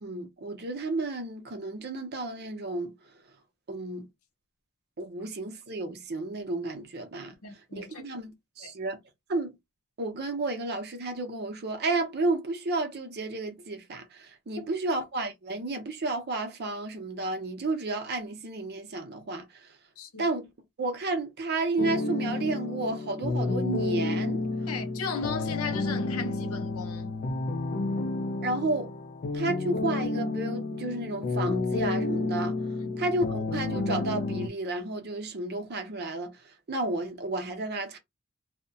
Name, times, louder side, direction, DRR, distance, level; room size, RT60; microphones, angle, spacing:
voice 1, 0.0-2.9 3.7-4.1 5.0-7.3 7.7-9.0 9.3-9.6 10.0-19.7 20.2-20.5 20.8-24.4 28.4-28.9 29.3-32.6 33.0-38.0, right 2 dB, 50° right, 0.6 m, -32 dB
voice 2, 7.4-8.0 8.6-8.7 20.0-20.2 24.7-27.1, left 5 dB, 85° left, 0.7 m, -36 dB
sound 1, 21.8-34.5, left 2 dB, 45° left, 0.4 m, -30 dB
2.7 x 2.1 x 2.6 m
head